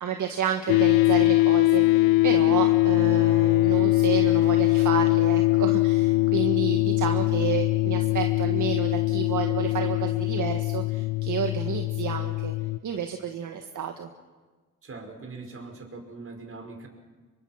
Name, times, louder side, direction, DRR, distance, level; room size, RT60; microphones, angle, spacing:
voice 1, 0.0-12.5 12.8-14.1, right 8 dB, 60° right, 5 dB, 1.9 m, -31 dB
sound 1, 0.7-12.8, left 20 dB, 80° left, 0.6 m, -22 dB
voice 2, 14.8-16.9, right 3 dB, 40° right, 4 dB, 5.5 m, -41 dB
26.0 x 23.5 x 6.0 m, 1.3 s
cardioid pair, 75°, 34 cm